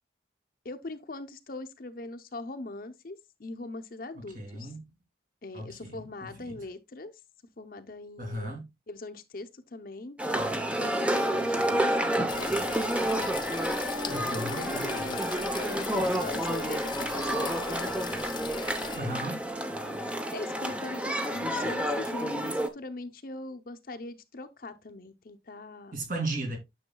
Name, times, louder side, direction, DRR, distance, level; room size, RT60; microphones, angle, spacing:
voice 1, 0.6-4.7 5.4-7.1 7.6-10.2 10.5-13.0 13.9-15.2 15.6-18.0 19.5-26.0, left 2 dB, 50° left, 0.7 m, -41 dB
voice 2, 4.3-4.8 5.5-6.6 8.2-8.6 14.1-15.1 19.0-19.4 25.9-26.6, right 1 dB, 45° right, 2.5 m, -36 dB
sound 1, 10.2-22.7, right 1 dB, 5° right, 0.7 m, -30 dB
sound 2, 12.3-19.0, left 6 dB, 25° left, 0.3 m, -40 dB
9.9 x 6.4 x 2.3 m
head